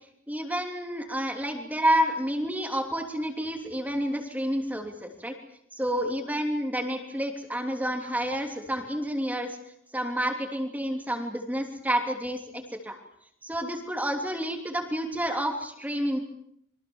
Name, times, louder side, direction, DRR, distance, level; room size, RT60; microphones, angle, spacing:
voice 1, 0.3-5.3 5.8-9.6 9.9-13.0 13.4-16.2, equal, 10° right, 3 dB, 3.0 m, -29 dB
27.5 x 24.0 x 7.2 m, 0.72 s
head